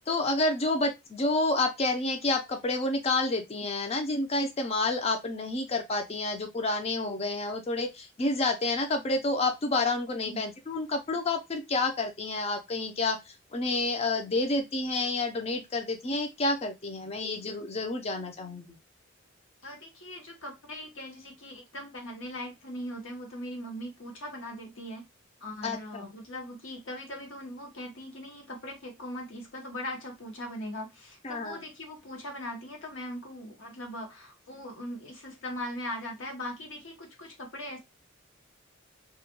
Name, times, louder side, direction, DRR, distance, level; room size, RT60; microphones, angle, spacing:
voice 1, 0.1-18.8 25.6-26.1 31.2-31.6, left 2 dB, 30° left, 5 dB, 0.5 m, -29 dB
voice 2, 19.6-25.1 25.4-37.8, left 1 dB, 70° left, 2 dB, 0.9 m, -40 dB
2.4 x 2.1 x 2.8 m, 0.21 s
head